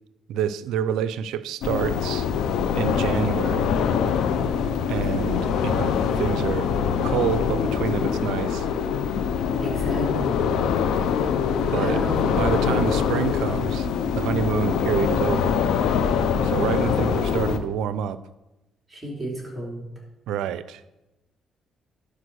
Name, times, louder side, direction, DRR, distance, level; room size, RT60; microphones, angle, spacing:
voice 1, 0.3-2.3 2.7-3.7 4.9-6.7 7.0-8.7 11.7-12.0 12.4-13.9 14.2-15.6 16.4-18.2 20.3-20.8, right 8 dB, 90° right, 15 dB, 0.5 m, -27 dB
sound 1, 1.6-17.6, left 7 dB, 85° left, 0.7 m, -23 dB
voice 2, 9.6-10.5 11.8-12.5 18.9-19.9, equal, 15° right, -3 dB, 3.4 m, -32 dB
11.5 x 4.9 x 6.2 m, 0.98 s
cardioid pair, 90°, 0 cm